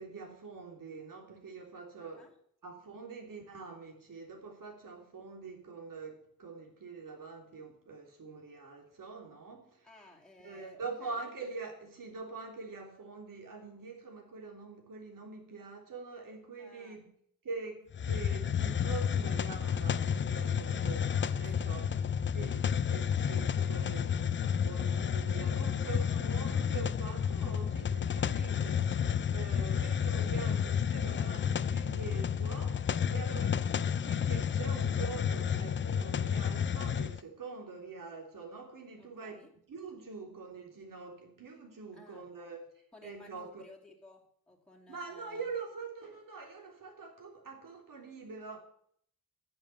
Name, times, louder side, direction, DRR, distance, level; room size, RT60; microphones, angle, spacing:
voice 1, 0.0-2.3 2.6-9.9 10.4-17.1 17.4-21.9 22.3-28.9 29.3-42.6 43.0-43.6 44.9-48.6, right 4 dB, 60° right, 3.4 m, -44 dB
voice 2, 2.0-2.3 9.8-11.3 16.6-17.1 20.6-20.9 21.3-22.1 26.2-26.6 39.0-39.5 41.9-42.4 42.9-45.4, left 2 dB, ahead, 2.5 m, -57 dB
Hiss, 17.9-37.2, left 8 dB, 35° left, 0.4 m, -31 dB
10.5 x 7.4 x 8.6 m
wide cardioid pair, 120°, 36 cm